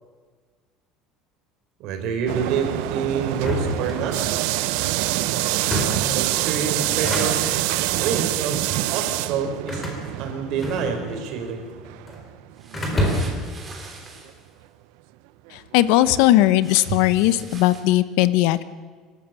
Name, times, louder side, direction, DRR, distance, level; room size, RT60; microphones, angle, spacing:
voice 1, 1.8-4.2 5.8-7.5 8.0-8.6 8.9-9.8 10.2-11.6 16.9-17.0, right 6 dB, 50° right, 4 dB, 4.2 m, -27 dB
sound 1, 2.3-13.2 13.4-13.5 14.3-14.4 15.9-16.0, right 17 dB, 75° right, 0.8 m, -26 dB
sound 2, 3.3-4.5 5.5-6.2 6.8-7.7 8.5-8.8 9.7-11.2 11.5-12.2 12.7-13.5, left 1 dB, 15° left, 4.1 m, -28 dB
sound 3, 10.6-10.9 12.5-14.5 16.6-17.8, right 3 dB, 15° right, 3.3 m, -44 dB
voice 2, 15.7-18.6, left 15 dB, 70° left, 15 dB, 0.9 m, -18 dB
26.0 x 13.0 x 8.9 m, 1.5 s
cardioid pair, 175°, 0 cm